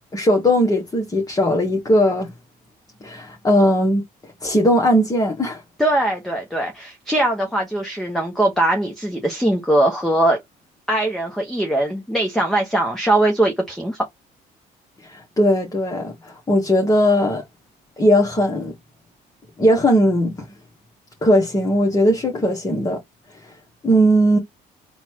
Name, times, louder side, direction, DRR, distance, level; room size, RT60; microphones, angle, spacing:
voice 1, 0.1-2.3 3.0-4.0 4.4-5.6 15.0-17.4 18.0-18.7 19.6-20.5 21.2-23.0 23.8-24.4, equal, 20° left, 1.2 m, -18 dB
voice 2, 5.8-10.4 10.9-14.1, right 1 dB, ahead, 0.9 m, -21 dB
3.9 x 2.4 x 4.5 m
cardioid pair, 110°, 17 cm